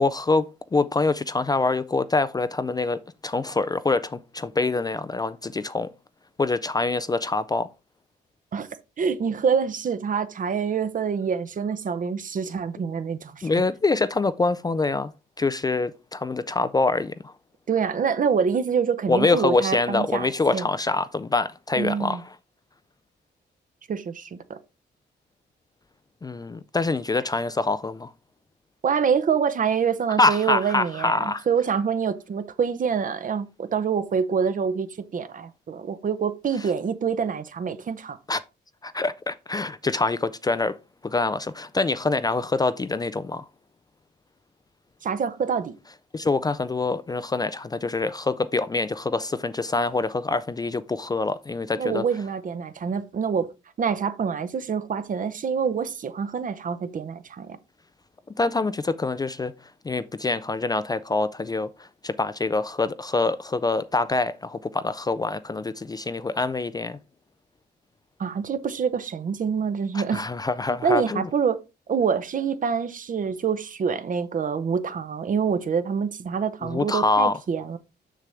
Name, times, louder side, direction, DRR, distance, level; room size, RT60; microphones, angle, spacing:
voice 1, 0.0-5.9 6.4-7.7 13.4-15.1 15.4-17.3 19.1-22.2 26.2-28.1 30.2-31.4 38.3-38.4 38.8-40.8 41.0-43.5 46.1-52.0 58.4-59.5 59.8-67.0 69.9-71.3 76.6-77.3, left 3 dB, 20° left, 0.4 m, -25 dB
voice 2, 9.0-13.5 17.7-20.7 21.8-22.2 23.9-24.6 28.8-38.2 45.0-45.8 51.8-53.5 53.8-57.6 68.2-70.2 70.8-71.6 71.9-77.8, right 6 dB, 45° right, 0.8 m, -26 dB
6.7 x 6.3 x 3.3 m
cardioid pair, 100°, 18 cm